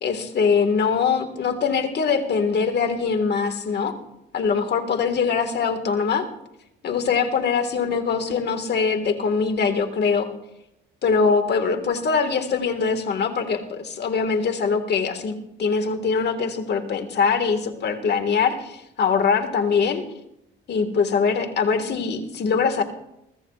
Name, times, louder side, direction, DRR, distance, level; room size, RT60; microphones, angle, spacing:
voice 1, 0.0-3.9 4.3-6.3 6.8-10.3 11.0-15.3 15.6-20.0 20.7-22.8, left 5 dB, 55° left, 6 dB, 1.8 m, -22 dB
23.0 x 15.5 x 2.4 m, 0.85 s
cardioid pair, 90°, 20 cm